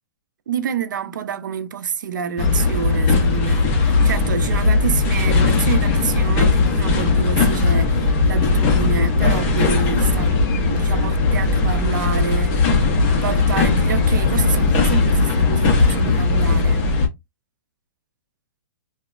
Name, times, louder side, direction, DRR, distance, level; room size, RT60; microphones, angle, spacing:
voice 1, 0.5-12.8 13.2-16.8, right 7 dB, 80° right, 0.5 m, -28 dB
sound 1, 2.4-17.1, left 3 dB, 15° left, 0.3 m, -18 dB
2.9 x 2.0 x 2.3 m
hypercardioid pair, 175°, 10 cm